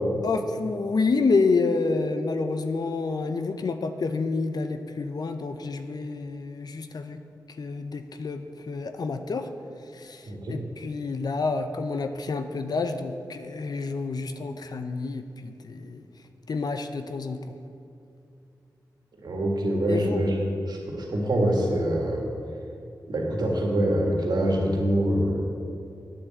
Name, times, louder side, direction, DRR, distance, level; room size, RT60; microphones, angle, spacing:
voice 1, 0.2-7.2 7.6-9.5 9.9-16.0 16.5-17.6 19.9-20.2, left 4 dB, 65° left, 8 dB, 0.7 m, -28 dB
voice 2, 10.3-10.6 19.2-20.3 20.7-22.3 23.1-25.5, right 1 dB, 70° right, 0 dB, 2.0 m, -25 dB
9.3 x 7.7 x 7.8 m, 2.6 s
cardioid pair, 45°, 7 cm